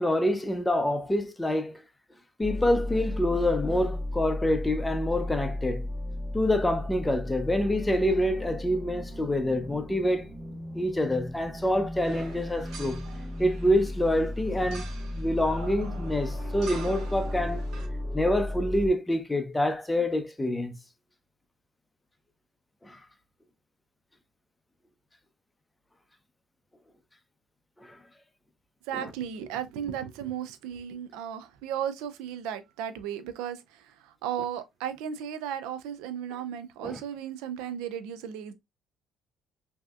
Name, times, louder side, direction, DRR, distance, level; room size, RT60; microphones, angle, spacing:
voice 1, 0.0-1.8 2.4-5.9 6.3-10.3 10.7-13.0 13.4-14.9 15.1-17.6 18.1-20.7 22.8-23.0 27.8-28.0 36.8-37.0, left 1 dB, 10° left, 0.6 m, -26 dB
sound 1, 2.4-18.9, left 1 dB, 20° right, 2.1 m, -35 dB
sound 2, 12.0-17.9, right 5 dB, 70° right, 0.9 m, -46 dB
voice 2, 28.8-38.5, right 9 dB, 90° right, 0.4 m, -35 dB
3.2 x 2.7 x 2.3 m
supercardioid pair, 85°, 0 cm